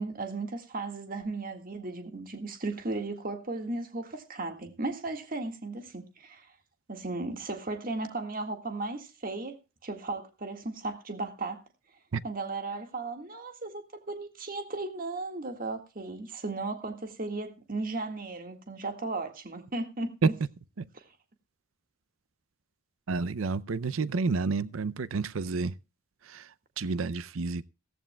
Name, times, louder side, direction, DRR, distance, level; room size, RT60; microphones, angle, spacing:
voice 1, 0.0-6.5 6.9-9.6 9.8-11.6 12.2-20.3 20.9-21.0, right 3 dB, 45° right, 1.8 m, -36 dB
voice 2, 23.1-25.7 26.3-26.5 26.8-27.7, right 4 dB, 90° right, 0.6 m, -30 dB
16.5 x 15.0 x 2.3 m
head